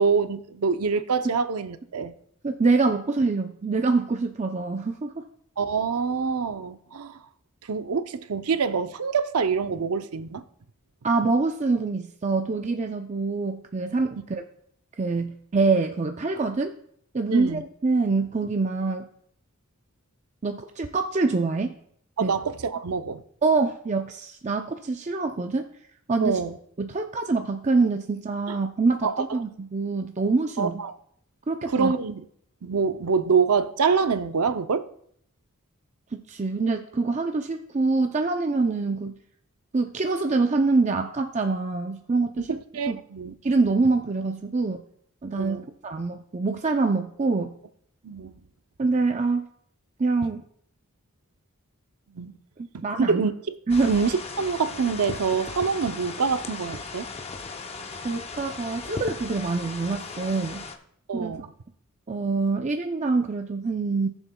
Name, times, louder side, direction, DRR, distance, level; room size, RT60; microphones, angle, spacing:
voice 1, 0.0-2.1 5.6-7.2 7.7-10.4 17.3-17.6 22.2-23.2 26.2-26.6 28.5-28.6 29.0-29.1 30.6-30.9 31.7-32.2 32.6-34.9 42.4-43.3 45.3-45.7 48.0-48.3 52.1-52.3 52.7-53.6 53.9-57.1 61.1-61.5, right 5 dB, 85° right, 0.6 m, -25 dB
voice 2, 2.4-5.2 11.0-14.4 15.0-16.7 17.1-19.1 20.4-21.7 22.2-22.3 23.4-25.6 26.1-26.4 26.8-30.8 31.5-31.9 36.1-39.1 39.7-42.6 42.9-43.0 43.4-44.8 45.2-45.6 45.8-47.5 48.8-49.5 50.0-50.4 52.6-53.2 53.7-53.9 58.0-60.6 61.1-61.4 62.1-64.1, right 3 dB, 30° right, 0.5 m, -25 dB
sound 1, 53.7-60.7, left 4 dB, 30° left, 0.7 m, -37 dB
17.5 x 7.1 x 2.2 m
head